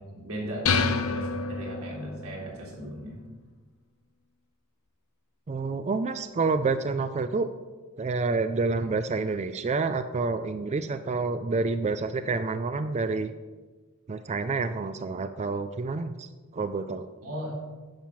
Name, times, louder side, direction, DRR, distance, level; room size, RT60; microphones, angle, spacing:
voice 1, 0.1-3.2 17.2-17.5, equal, 90° right, -3 dB, 3.7 m, -37 dB
sound 1, 0.7-2.3, left 4 dB, 75° left, 0.8 m, -27 dB
voice 2, 5.5-7.5 8.0-13.3 14.1-16.3 16.5-17.1, right 4 dB, 30° right, 10 dB, 0.4 m, -28 dB
10.5 x 7.4 x 5.9 m, 1.3 s
head